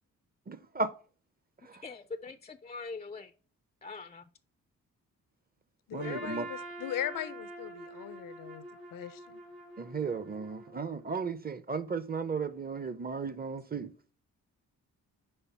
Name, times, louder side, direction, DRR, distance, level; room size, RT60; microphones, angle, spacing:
voice 1, 0.5-0.9 1.6-1.8 5.9-6.5 9.8-13.9, right 5 dB, 25° right, 0.7 m, -35 dB
voice 2, 1.8-3.3 3.8-4.2, left 4 dB, 20° left, 0.4 m, -42 dB
voice 3, 5.9-8.6 8.9-9.4, left 11 dB, 70° left, 0.6 m, -39 dB
Trumpet, 6.0-11.1, right 2 dB, 90° right, 1.8 m, -46 dB
5.1 x 4.4 x 5.5 m
supercardioid pair, 50°, 35 cm